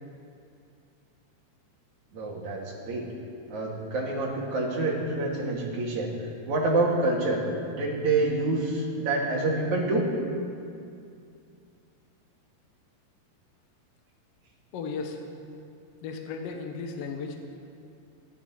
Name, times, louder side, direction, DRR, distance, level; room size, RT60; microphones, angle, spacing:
voice 1, 2.1-3.0 3.5-6.1 6.5-7.4 7.7-10.0, right 2 dB, 50° right, -3 dB, 3.3 m, -27 dB
voice 2, 14.7-15.2 16.0-17.5, left 4 dB, 65° left, 3 dB, 1.5 m, -35 dB
26.0 x 10.5 x 4.5 m, 2.4 s
omnidirectional pair, 4.7 m